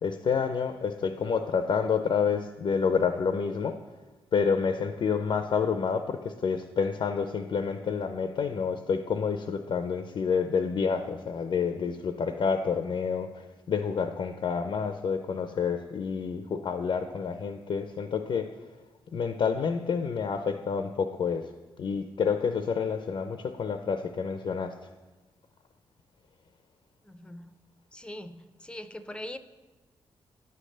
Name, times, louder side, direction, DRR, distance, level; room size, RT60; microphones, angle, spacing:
voice 1, 0.0-3.8 4.3-18.5 19.1-21.5 21.8-24.8, left 6 dB, 60° left, 0.5 m, -28 dB
voice 2, 27.1-27.6 27.9-29.4, left 1 dB, 10° left, 0.5 m, -41 dB
9.3 x 3.3 x 6.4 m
cardioid pair, 55°, 10 cm